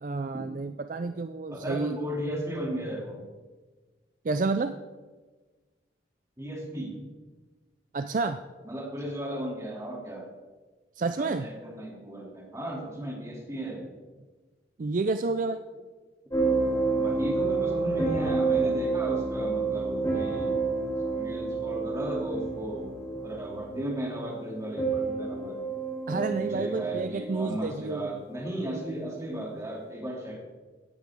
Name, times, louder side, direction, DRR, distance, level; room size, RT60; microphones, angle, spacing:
voice 1, 0.0-1.9 4.2-4.7 7.9-8.4 11.0-11.5 14.8-15.6 26.1-28.1, right 3 dB, 45° right, 9 dB, 0.4 m, -29 dB
voice 2, 1.5-3.2 6.4-7.0 8.6-10.3 11.2-13.9 16.9-20.6 21.1-22.9 23.2-25.7 26.1-30.5, right 1 dB, 15° right, -2 dB, 2.7 m, -35 dB
sound 1, 16.3-28.0 28.9-29.2, right 3 dB, 20° left, 3.9 m, -29 dB
16.5 x 9.6 x 3.6 m, 1.3 s
head